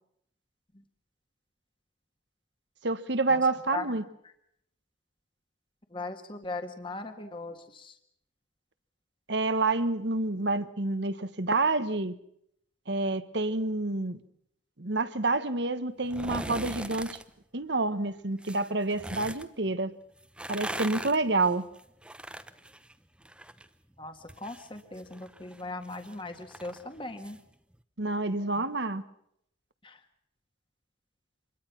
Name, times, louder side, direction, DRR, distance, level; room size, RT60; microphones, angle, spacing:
voice 1, 2.8-4.0 9.3-12.2 12.9-14.2 14.8-17.2 17.5-19.9 20.5-21.7 28.0-29.0, right 3 dB, 65° right, 12 dB, 1.3 m, -28 dB
voice 2, 5.9-8.0 24.0-27.4 28.6-28.7 29.8-30.0, left 2 dB, 25° left, 6 dB, 1.8 m, -39 dB
sound 1, 16.0-17.2 18.4-19.5 20.2-23.7 24.0-27.4 27.7-27.8, right 1 dB, 5° right, 0.9 m, -40 dB
26.5 x 22.0 x 6.0 m, 0.73 s
head